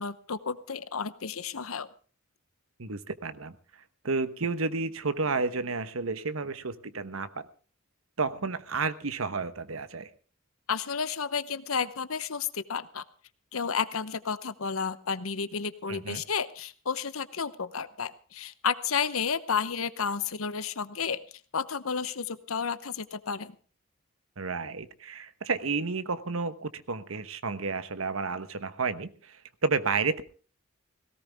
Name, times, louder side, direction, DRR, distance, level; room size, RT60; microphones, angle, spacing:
voice 1, 0.0-1.9 10.7-13.0 13.5-21.2 21.5-23.5, left 6 dB, 90° left, 14 dB, 0.9 m, -32 dB
voice 2, 2.8-7.5 8.2-10.1 15.9-16.2 24.4-30.2, right 4 dB, 85° right, 12 dB, 1.1 m, -31 dB
17.5 x 17.5 x 3.5 m, 0.38 s
head